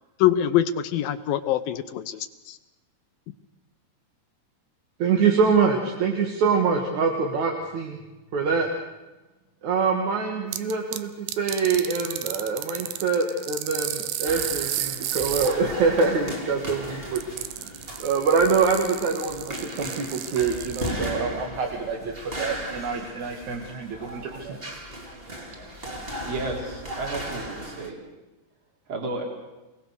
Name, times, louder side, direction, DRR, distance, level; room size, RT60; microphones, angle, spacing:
voice 1, 0.2-2.2 2.5-2.6, left 11 dB, 75° left, 11 dB, 2.4 m, -23 dB
voice 2, 5.0-8.0 8.3-8.7 9.6-24.6, right 5 dB, 55° right, 1 dB, 3.0 m, -25 dB
sound 1, 10.5-11.0 11.3-15.5 17.2-20.9, right 13 dB, 85° right, 2.9 m, -32 dB
sound 2, 14.2-27.9, equal, 15° right, 2.2 m, -36 dB
voice 3, 26.2-28.0 28.9-29.3, right 3 dB, 30° right, 1 dB, 4.4 m, -32 dB
28.5 x 18.5 x 6.7 m, 1.1 s
omnidirectional pair, 4.6 m